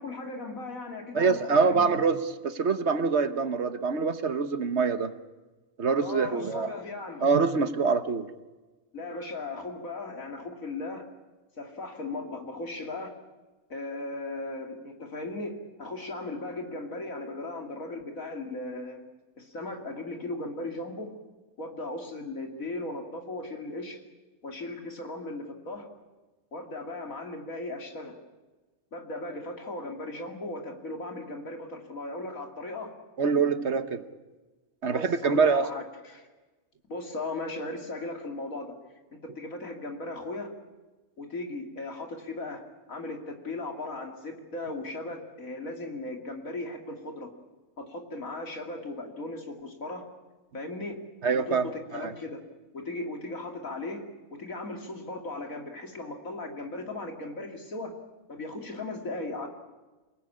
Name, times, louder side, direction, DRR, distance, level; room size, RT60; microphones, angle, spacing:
voice 1, 0.0-2.0 6.0-7.3 8.9-11.1 11.6-13.1 13.7-19.0 19.4-21.1 21.6-24.0 24.4-25.9 26.5-28.2 28.9-32.9 34.9-36.3 36.9-38.8 39.1-40.5 41.2-42.6 42.9-47.3 47.8-50.0 50.5-51.0 51.3-52.4 52.7-54.0 54.3-57.9 58.3-59.5, left 2 dB, 80° left, 3 dB, 3.2 m, -37 dB
voice 2, 1.1-2.2 2.4-5.1 5.8-6.7 7.2-8.3 33.2-34.0 34.8-35.7 51.2-51.6 51.9-52.1, right 5 dB, 55° right, 10 dB, 1.4 m, -25 dB
28.0 x 18.5 x 8.7 m, 1.2 s
omnidirectional pair, 1.4 m